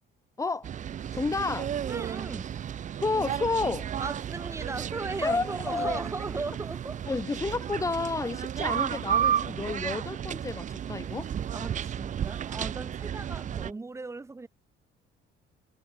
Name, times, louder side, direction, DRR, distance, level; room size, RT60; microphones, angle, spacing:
voice 1, 0.4-0.7 1.1-1.7 3.0-3.9 5.2-6.1 7.1-11.3, left 3 dB, 15° left, 4.3 m, -30 dB
sound 1, 0.6-13.7, right 9 dB, 40° right, 1.4 m, -33 dB
voice 2, 1.8-2.5 4.0-7.0 8.6-8.7 11.2-14.5, right 3 dB, 15° right, 4.7 m, -38 dB
cardioid pair, 165°, 20 cm